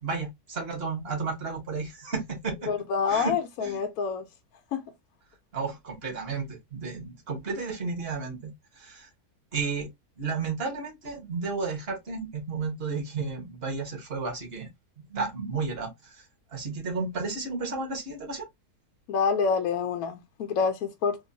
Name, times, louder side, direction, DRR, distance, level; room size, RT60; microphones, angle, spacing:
voice 1, 0.0-2.7 3.1-3.3 3.6-3.8 5.5-9.1 9.5-9.9 10.2-14.7 15.1-16.2 16.5-18.5, right 4 dB, 45° right, 1.4 m, -32 dB
voice 2, 2.7-4.2 4.7-4.8 19.1-21.2, left 6 dB, 75° left, 1.0 m, -27 dB
3.7 x 2.5 x 2.6 m
omnidirectional pair, 1.6 m